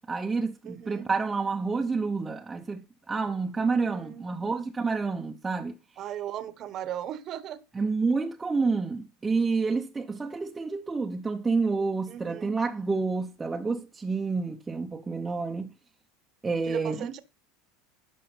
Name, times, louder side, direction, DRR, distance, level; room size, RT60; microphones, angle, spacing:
voice 1, 0.1-5.7 7.8-15.7 16.4-17.1, right 4 dB, 15° right, 0.8 m, -29 dB
voice 2, 0.6-1.1 3.6-4.4 6.0-7.6 12.1-12.5 16.6-17.2, right 11 dB, 45° right, 1.2 m, -37 dB
11.5 x 6.0 x 5.5 m
supercardioid pair, 120°, 0 cm